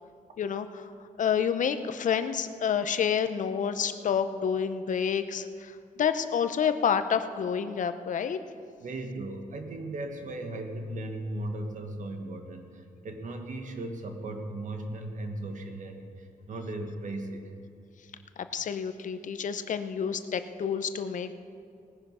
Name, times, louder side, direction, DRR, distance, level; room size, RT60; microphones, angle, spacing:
voice 1, 0.4-0.9 1.2-8.4 18.5-21.3, left 7 dB, 65° left, 10 dB, 0.7 m, -29 dB
voice 2, 8.8-17.5, right 1 dB, 60° right, 5 dB, 1.6 m, -37 dB
19.0 x 10.0 x 5.6 m, 2.4 s
wide cardioid pair, 135°, 14 cm